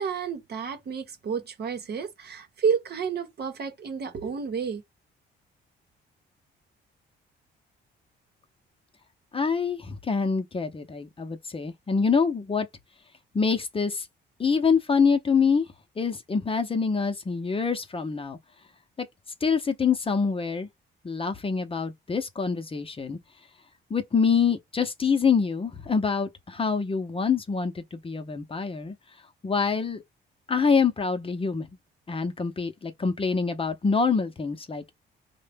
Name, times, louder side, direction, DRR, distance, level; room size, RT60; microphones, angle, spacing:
voice 1, 0.0-4.8, right 6 dB, 55° right, 1.0 m, -30 dB
voice 2, 9.3-12.7 13.3-14.1 14.4-15.7 16.0-18.4 19.0-19.1 19.4-20.7 21.0-23.2 23.9-28.9 29.4-30.0 30.5-31.7 32.1-34.8, left 5 dB, 25° left, 0.7 m, -25 dB
4.7 x 2.2 x 3.4 m
cardioid pair, 90°, 20 cm